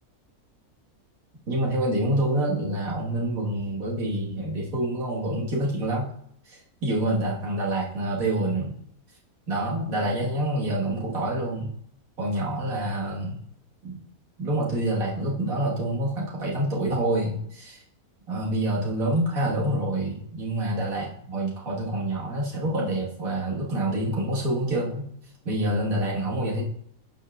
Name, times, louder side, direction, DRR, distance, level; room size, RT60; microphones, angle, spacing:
voice 1, 1.5-6.1 6.5-8.8 9.5-11.7 12.2-13.4 13.8-14.0 14.4-17.8 18.3-25.1 25.5-26.6, right 1 dB, 70° right, -4 dB, 2.1 m, -27 dB
11.5 x 5.5 x 2.4 m, 0.68 s
omnidirectional pair, 1.6 m